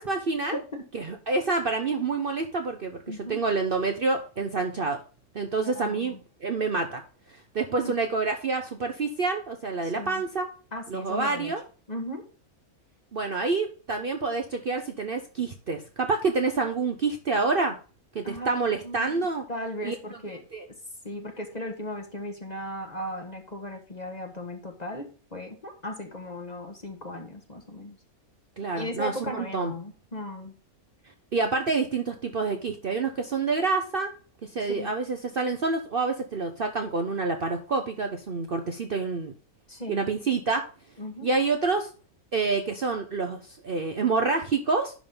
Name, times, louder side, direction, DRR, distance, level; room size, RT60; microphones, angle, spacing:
voice 1, 0.0-0.6 0.9-5.0 5.3-6.1 6.4-7.0 7.5-10.5 10.9-11.6 13.1-17.8 18.1-19.4 19.8-19.9 20.5-20.7 28.6-29.7 31.3-34.1 34.4-39.3 39.9-40.6 41.2-41.9 42.3-44.9, right 4 dB, 45° right, 4 dB, 0.9 m, -27 dB
voice 2, 0.5-0.8 3.1-3.4 5.6-6.2 7.7-7.9 9.8-10.2 10.7-11.5 11.9-12.2 18.2-20.4 21.0-28.0 28.7-30.6 34.6-34.9 39.7-40.1 41.0-41.3, left 1 dB, 30° left, 4 dB, 1.3 m, -37 dB
11.0 x 3.8 x 5.4 m, 0.38 s
omnidirectional pair, 1.6 m